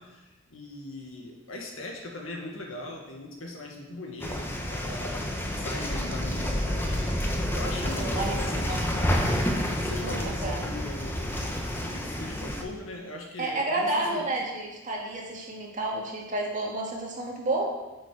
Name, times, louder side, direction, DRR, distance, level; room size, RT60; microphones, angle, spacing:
voice 1, 0.0-9.2 9.7-14.2, left 2 dB, 75° left, 1 dB, 1.8 m, -40 dB
sound 1, 4.2-12.6, equal, 10° left, 1.0 m, -29 dB
voice 2, 8.0-8.8 10.0-10.6 13.4-17.6, right 2 dB, 40° right, -2 dB, 2.0 m, -31 dB
9.2 x 6.9 x 4.9 m, 1.1 s
head